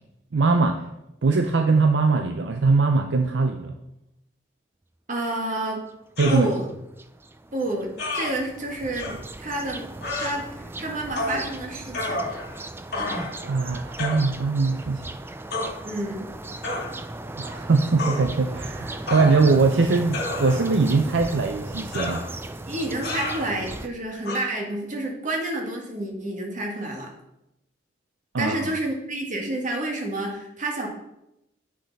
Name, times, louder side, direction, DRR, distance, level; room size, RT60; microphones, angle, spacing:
voice 1, 0.3-0.8 1.2-3.7 6.2-6.5 13.4-15.0 17.4-22.3 28.3-28.7, right 3 dB, 70° right, 6 dB, 0.5 m, -21 dB
voice 2, 5.1-5.8 6.3-6.7 7.5-9.8 10.2-12.3 15.8-16.3 22.7-27.1 28.4-30.9, right 1 dB, 40° right, 0 dB, 1.7 m, -29 dB
sound 1, 5.9-6.0 6.3-23.9, right 2 dB, 10° right, 0.3 m, -37 dB
sound 2, 6.2-6.5 8.0-8.3 9.0-9.1 10.0-10.3 11.2-11.4 11.9-12.6 12.9-13.4 14.0-14.2 15.5-15.7 16.6-16.9 18.0-18.2 19.1-19.6 20.1-20.8 21.9-22.3 23.0-23.4 24.2-24.4, left 2 dB, 55° left, 2.5 m, -30 dB
8.4 x 6.3 x 4.0 m, 0.87 s
head